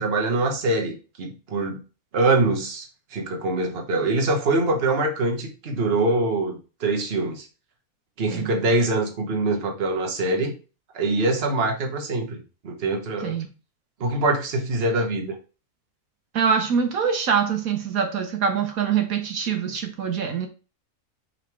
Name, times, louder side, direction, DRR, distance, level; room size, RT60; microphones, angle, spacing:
voice 1, 0.0-1.8 2.1-7.5 8.2-10.5 10.9-13.4 14.0-15.4, right 2 dB, 45° right, 1.3 m, -24 dB
voice 2, 16.3-20.5, right 6 dB, 75° right, 1.3 m, -24 dB
5.2 x 4.0 x 4.6 m
omnidirectional pair, 1.5 m